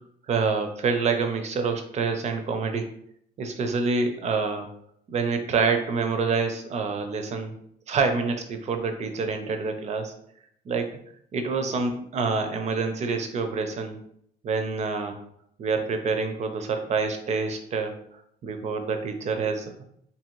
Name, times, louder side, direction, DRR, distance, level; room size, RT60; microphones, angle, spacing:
voice 1, 0.3-2.9 3.4-4.7 5.1-7.6 7.9-10.1 10.7-11.0 11.3-14.0 14.4-15.2 15.6-18.0 18.4-19.8, right 4 dB, 40° right, 6 dB, 0.5 m, -27 dB
2.8 x 2.7 x 2.9 m, 0.69 s
cardioid pair, 110°, 17 cm